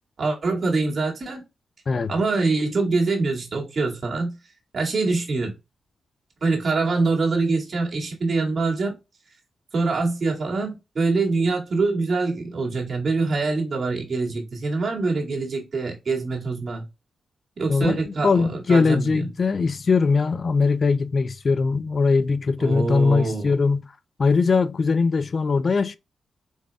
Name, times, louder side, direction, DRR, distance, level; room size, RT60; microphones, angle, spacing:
voice 1, 0.2-1.4 2.1-4.4 4.7-5.5 6.4-9.0 9.7-16.9 17.6-19.3 22.6-23.5, right 3 dB, 50° right, 2.0 m, -24 dB
voice 2, 17.7-23.8 24.2-26.0, left 4 dB, 50° left, 0.3 m, -21 dB
4.6 x 4.1 x 2.2 m
supercardioid pair, 45°, 0 cm